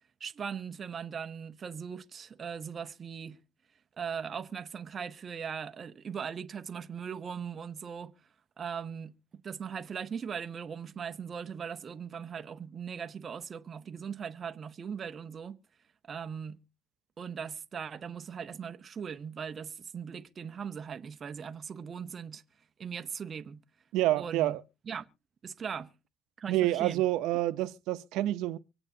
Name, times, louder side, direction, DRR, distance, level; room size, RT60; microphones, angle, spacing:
voice 1, 0.2-3.4 4.0-8.1 8.6-15.6 16.0-16.6 17.2-22.4 22.8-23.6 24.2-24.6 24.9-25.1 25.4-25.9 26.4-27.0, right 7 dB, 35° right, 0.7 m, -39 dB
voice 2, 23.9-24.6 26.5-28.6, right 15 dB, 90° right, 0.6 m, -28 dB
24.5 x 8.8 x 2.7 m
cardioid pair, 125°, 0 cm